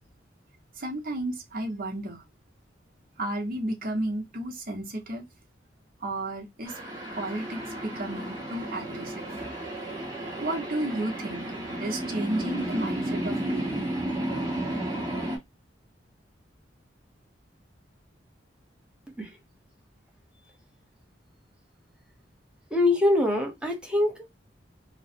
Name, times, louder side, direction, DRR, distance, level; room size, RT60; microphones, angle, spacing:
voice 1, 0.7-2.2 3.2-5.3 6.0-6.8 7.2-9.5 10.4-11.5 11.8-13.9, right 1 dB, 55° right, 0.9 m, -33 dB
sound 1, 6.6-15.4, right 1 dB, 25° right, 1.1 m, -33 dB
voice 2, 22.7-24.3, left 2 dB, 5° right, 0.8 m, -24 dB
3.0 x 2.1 x 2.7 m
head